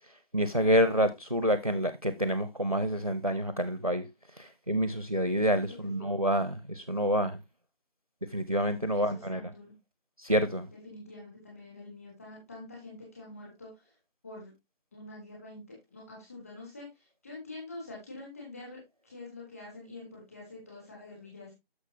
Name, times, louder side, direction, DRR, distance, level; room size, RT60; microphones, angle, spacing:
voice 1, 0.3-4.1 4.4-7.4 8.3-9.4 10.2-10.7, equal, 35° right, 0.6 m, -28 dB
voice 2, 5.7-6.1 8.9-9.7 10.8-13.7 14.2-14.5 14.9-21.5, left 2 dB, 15° left, 3.5 m, -46 dB
11.0 x 6.6 x 2.8 m
figure-of-eight pair, 170°, 30 cm